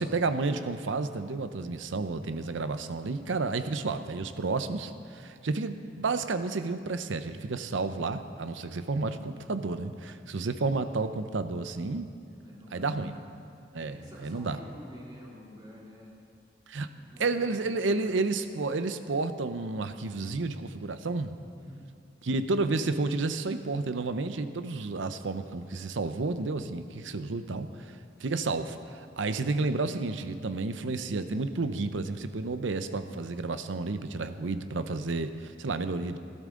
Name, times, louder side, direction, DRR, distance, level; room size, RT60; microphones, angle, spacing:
voice 1, 0.0-12.1 12.7-13.1 13.7-14.6 16.7-16.9 17.2-21.3 22.2-36.2, right 3 dB, 80° right, 10 dB, 0.6 m, -31 dB
voice 2, 12.4-13.2 13.7-16.2 16.8-18.2 21.5-21.9, equal, 20° right, -5 dB, 2.7 m, -48 dB
16.0 x 13.0 x 3.8 m, 2.6 s
head